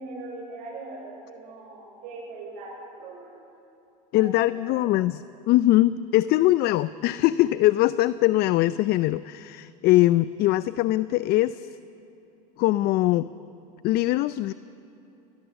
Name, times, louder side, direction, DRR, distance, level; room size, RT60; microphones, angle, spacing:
voice 1, 0.0-3.4 4.1-4.8 6.6-6.7, right 3 dB, 70° right, -6 dB, 6.5 m, -41 dB
voice 2, 4.1-11.7 12.6-13.3 13.8-14.5, left 16 dB, 50° left, 16 dB, 0.5 m, -22 dB
20.5 x 18.0 x 7.1 m, 2.9 s
supercardioid pair, 110°, 21 cm